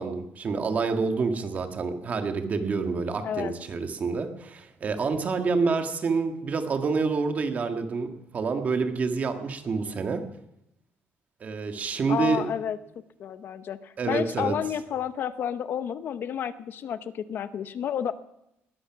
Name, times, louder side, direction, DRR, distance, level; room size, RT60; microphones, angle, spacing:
voice 1, 0.0-10.2 11.4-12.5 14.0-14.6, right 4 dB, 35° right, 6 dB, 1.7 m, -28 dB
voice 2, 12.1-12.8 13.2-18.1, left 9 dB, 50° left, 13 dB, 0.8 m, -31 dB
20.0 x 12.5 x 5.9 m, 0.82 s
cardioid pair, 160°, 5 cm